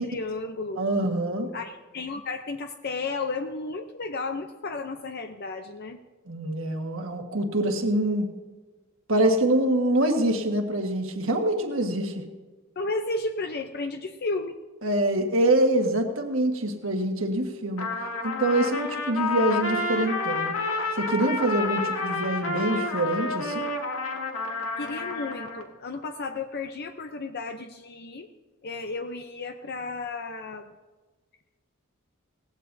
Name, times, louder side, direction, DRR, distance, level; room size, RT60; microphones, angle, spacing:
voice 1, 0.0-0.8 1.5-6.0 12.8-14.6 24.8-28.3 28.6-30.7, left 3 dB, 50° left, 6 dB, 0.6 m, -33 dB
voice 2, 0.8-1.5 6.3-8.3 9.1-12.1 14.8-17.9 18.2-20.5 21.0-23.7, right 1 dB, 65° right, 4 dB, 1.5 m, -25 dB
Trumpet, 17.8-25.7, left 3 dB, 80° left, 1.6 m, -30 dB
18.5 x 15.0 x 2.7 m, 1.3 s
head